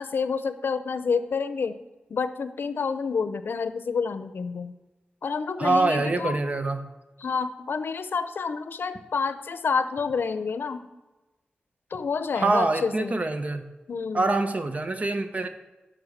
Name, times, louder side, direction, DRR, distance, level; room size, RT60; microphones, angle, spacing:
voice 1, 0.0-1.8 2.1-4.7 5.2-6.4 7.2-10.9 11.9-13.2 13.9-14.4, left 5 dB, 85° left, 12 dB, 0.6 m, -28 dB
voice 2, 5.6-6.8 12.4-13.7 14.1-15.5, right 2 dB, 40° right, 8 dB, 0.8 m, -25 dB
11.0 x 6.0 x 6.5 m, 1.1 s
wide cardioid pair, 95°, 4 cm